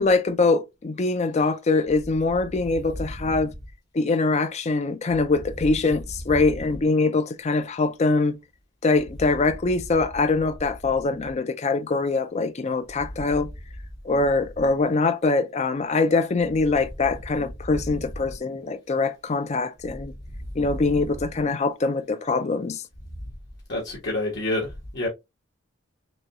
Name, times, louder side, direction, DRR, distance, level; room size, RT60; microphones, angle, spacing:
voice 1, 0.0-3.5 3.9-8.4 8.8-13.5 14.0-20.1 20.6-22.8, left 3 dB, 35° left, 0.4 m, -23 dB
voice 2, 23.7-25.1, left 2 dB, 60° left, 1.3 m, -28 dB
6.0 x 2.3 x 2.9 m
head